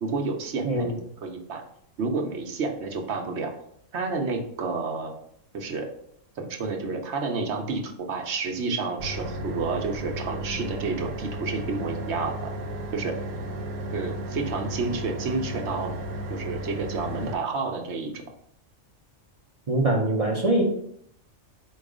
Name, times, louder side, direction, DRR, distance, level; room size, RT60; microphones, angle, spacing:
voice 1, 0.0-1.6 2.0-3.5 3.9-5.1 5.5-5.9 6.4-12.5 12.9-13.2 13.9-16.0 16.3-18.2, right 4 dB, 65° right, 3 dB, 1.0 m, -30 dB
sound 1, 9.0-17.3, right 1 dB, 90° right, 1.0 m, -34 dB
voice 2, 19.7-20.6, right 1 dB, 40° right, -1 dB, 0.6 m, -23 dB
4.6 x 2.3 x 4.8 m, 0.68 s
omnidirectional pair, 1.3 m